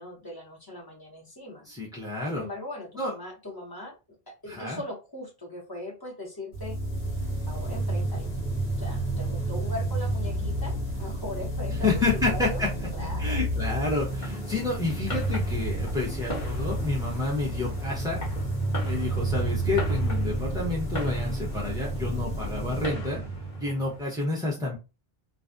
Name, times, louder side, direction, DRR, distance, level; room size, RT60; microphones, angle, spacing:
voice 1, 0.0-1.7 2.3-3.9 4.3-6.8 7.5-8.3 8.8-12.6 12.9-13.4 14.2-14.6, left 1 dB, 25° left, -3 dB, 0.7 m, -39 dB
voice 2, 1.7-2.4 3.0-3.1 4.5-4.8 11.8-12.7 13.2-18.2 18.8-23.2 23.6-24.8, left 3 dB, 5° right, -4 dB, 0.3 m, -29 dB
sound 1, 6.5-24.0, right 1 dB, 70° left, 1.1 m, -30 dB
Fireworks, 14.0-24.1, left 1 dB, 50° left, 1.0 m, -41 dB
2.4 x 2.1 x 2.5 m, 0.29 s
omnidirectional pair, 1.1 m